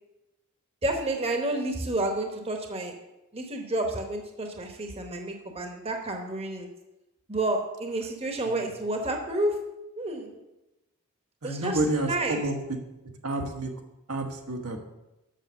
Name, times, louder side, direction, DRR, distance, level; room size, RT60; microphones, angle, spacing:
voice 1, 0.8-2.9 3.3-6.7 7.3-9.6 10.0-10.4 11.4-12.4, right 2 dB, 25° right, 3 dB, 1.0 m, -30 dB
voice 2, 11.4-12.5 13.2-13.7 14.1-14.8, right 1 dB, 85° right, 2 dB, 1.4 m, -29 dB
7.6 x 6.2 x 6.9 m, 0.98 s
head